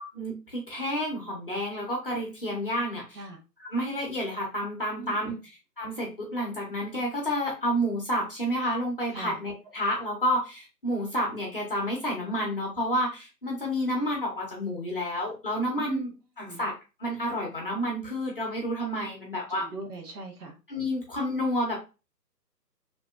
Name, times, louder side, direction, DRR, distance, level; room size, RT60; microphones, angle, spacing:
voice 1, 0.1-3.2 3.6-5.3 5.8-16.1 16.4-16.7 17.0-19.7 20.7-21.8, equal, 35° left, -1 dB, 0.7 m, -30 dB
voice 2, 5.0-5.4 9.1-9.4 15.8-16.1 16.4-16.6 19.5-20.6, right 4 dB, 65° right, 1 dB, 1.1 m, -38 dB
2.9 x 2.5 x 2.3 m, 0.29 s
figure-of-eight pair, 160°, 50 cm